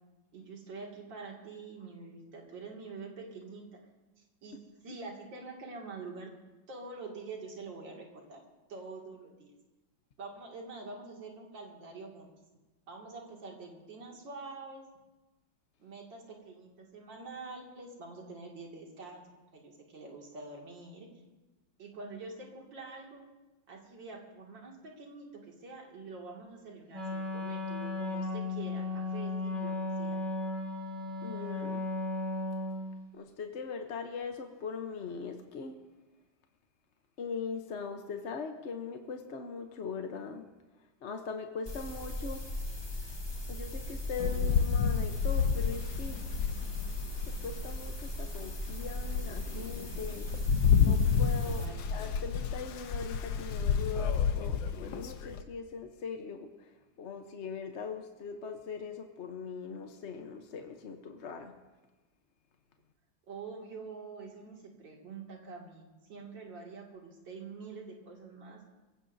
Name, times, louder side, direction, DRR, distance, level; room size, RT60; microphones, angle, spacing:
voice 1, 0.3-3.7 4.4-4.6 4.8-6.3 6.7-8.4 8.7-9.5 10.2-12.3 12.9-14.8 15.8-19.3 19.5-21.1 21.8-23.2 23.7-30.2 51.4-51.9 63.3-68.6, right 4 dB, 70° right, -1 dB, 3.0 m, -46 dB
Wind instrument woodwind instrument, 26.9-33.0, left 2 dB, 30° right, 3.6 m, -35 dB
voice 2, 31.2-31.8 33.1-35.8 37.2-40.4 41.0-42.6 43.5-46.3 47.3-50.3 50.8-51.6 51.9-61.5, left 5 dB, 50° left, 5 dB, 0.9 m, -40 dB
sound 1, 41.7-51.7, left 1 dB, 15° left, 1.4 m, -39 dB
Rain, 44.2-47.7 48.2-48.3 48.8-55.4, left 6 dB, 75° left, 1.6 m, -30 dB
24.5 x 16.0 x 2.7 m, 1.1 s
omnidirectional pair, 2.1 m